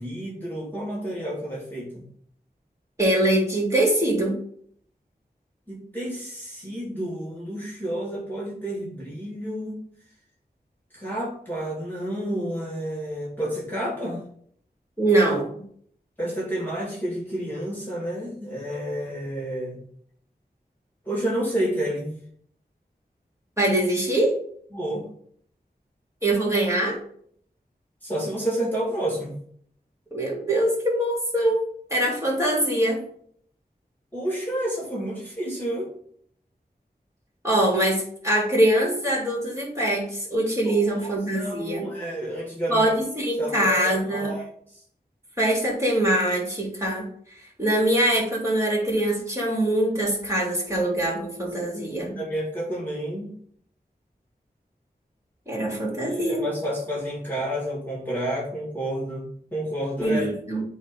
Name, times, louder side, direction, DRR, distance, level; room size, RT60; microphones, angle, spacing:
voice 1, 0.0-2.0 5.7-9.8 10.9-14.2 16.2-19.8 21.1-22.1 24.7-25.1 28.0-29.4 34.1-35.9 40.6-42.9 43.4-44.8 52.2-53.3 56.1-60.3, right 1 dB, 10° left, -4 dB, 2.4 m, -30 dB
voice 2, 3.0-4.4 15.0-15.6 23.6-24.3 26.2-27.0 30.1-33.0 37.4-41.9 42.7-44.3 45.4-47.0 47.6-52.2 55.5-56.4 60.0-60.6, right 1 dB, 15° right, -4 dB, 3.2 m, -23 dB
8.1 x 2.8 x 5.4 m, 0.63 s
wide cardioid pair, 45°, 17 cm